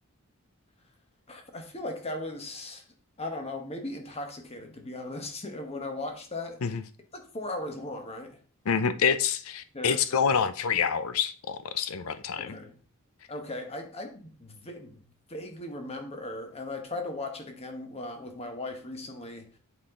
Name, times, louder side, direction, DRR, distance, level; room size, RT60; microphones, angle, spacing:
voice 1, 1.3-2.8 3.2-6.6 7.1-8.4 9.7-10.2 12.4-12.8 13.3-15.0 15.3-19.6, left 2 dB, 30° left, 4 dB, 1.0 m, -38 dB
voice 2, 8.7-12.6, left 6 dB, 75° left, 12 dB, 0.6 m, -27 dB
8.4 x 4.0 x 3.7 m, 0.40 s
head